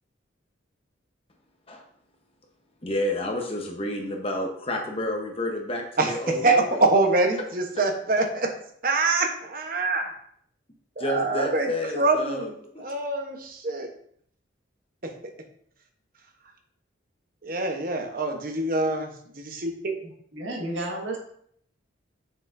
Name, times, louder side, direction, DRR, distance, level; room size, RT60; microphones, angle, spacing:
voice 1, 2.8-6.9 11.0-12.5 12.7-12.8, left 1 dB, 30° left, 2 dB, 1.0 m, -29 dB
voice 2, 6.0-8.5 8.8-10.2 11.0-12.5 12.8-13.9 15.0-15.1 17.4-20.1, right 3 dB, 45° right, 4 dB, 1.1 m, -25 dB
voice 3, 20.3-21.2, right 1 dB, 80° right, -1 dB, 1.7 m, -31 dB
7.1 x 6.7 x 2.7 m, 0.65 s
head